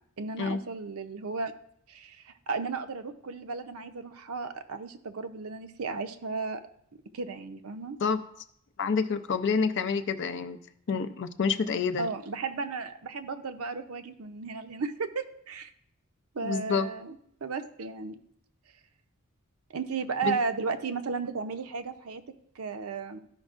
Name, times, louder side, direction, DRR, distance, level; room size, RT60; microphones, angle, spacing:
voice 1, 0.2-1.5 1.9-6.6 7.1-8.0 12.0-15.7 16.3-17.2 17.4-18.2 19.7-22.2 22.6-23.2, right 4 dB, 75° right, 9 dB, 0.6 m, -34 dB
voice 2, 8.8-10.6 10.9-12.1 16.4-16.9 20.2-20.4, left 5 dB, 55° left, 10 dB, 0.5 m, -28 dB
13.5 x 5.2 x 2.4 m, 0.71 s
head